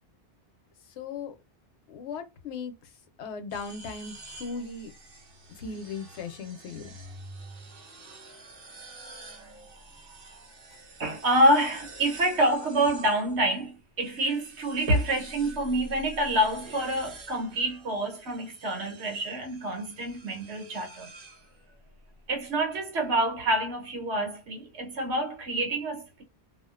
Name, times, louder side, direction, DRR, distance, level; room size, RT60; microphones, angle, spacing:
voice 1, 1.0-1.3 1.9-2.7 3.2-4.1 4.4-4.9 5.6-6.9, left 5 dB, 90° left, 0.9 m, -37 dB
sound 1, 3.5-13.6 14.0-21.9, right 2 dB, 60° right, 0.9 m, -48 dB
voice 2, 11.0-21.1 22.3-26.2, right 1 dB, 80° right, 1.1 m, -27 dB
2.4 x 2.1 x 2.4 m
omnidirectional pair, 1.1 m